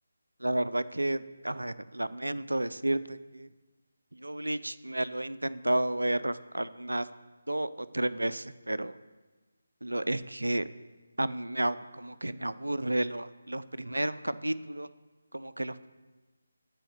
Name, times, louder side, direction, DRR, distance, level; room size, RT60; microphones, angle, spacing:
voice 1, 0.4-3.5 4.1-7.1 7.5-8.9 9.8-10.7 11.2-14.9 15.3-15.9, right 1 dB, 85° right, 16 dB, 0.5 m, -31 dB
13.5 x 5.1 x 7.0 m, 1.3 s
figure-of-eight pair, 155°, 0 cm